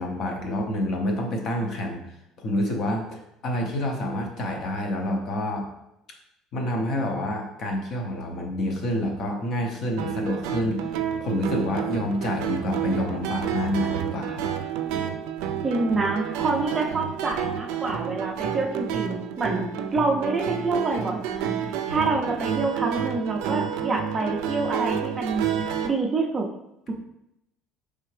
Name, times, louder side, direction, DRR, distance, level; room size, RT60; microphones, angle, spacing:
voice 1, 0.0-2.0 2.4-5.7 6.5-10.8 11.2-14.5 21.9-22.1 26.9-27.0, left 1 dB, 40° left, 2 dB, 0.7 m, -28 dB
sound 1, 10.0-25.9, right 8 dB, 80° right, 0.4 m, -30 dB
voice 2, 15.6-19.6 19.9-21.5 21.9-25.4 25.8-26.5, right 3 dB, 20° right, 0 dB, 0.5 m, -26 dB
4.6 x 3.3 x 3.2 m, 0.82 s
cardioid pair, 165°, 0 cm